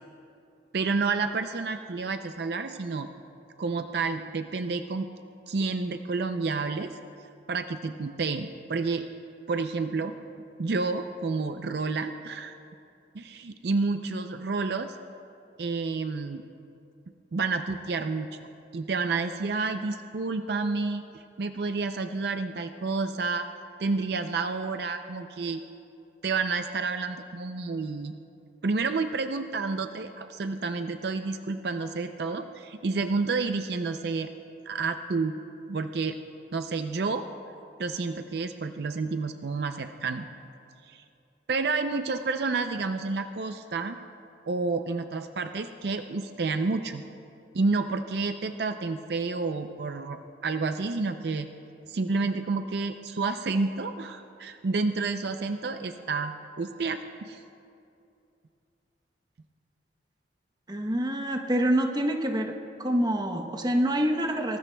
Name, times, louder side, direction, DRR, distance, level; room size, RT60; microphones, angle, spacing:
voice 1, 0.7-3.1 3.6-5.1 5.5-7.0 7.5-9.0 9.5-10.2 10.6-12.6 13.1-15.0 15.6-16.4 17.3-18.3 18.7-23.5 23.8-25.6 26.2-28.1 28.6-34.3 34.7-35.4 35.7-36.2 36.5-37.3 37.8-40.2 40.8-41.0 41.5-44.0 44.5-47.0 47.5-51.5 51.9-57.4, right 4 dB, 60° right, 8 dB, 0.5 m, -30 dB
voice 2, 60.7-62.5 62.8-64.6, right 1 dB, 25° right, 4 dB, 0.9 m, -26 dB
23.5 x 19.5 x 2.3 m, 2.6 s
head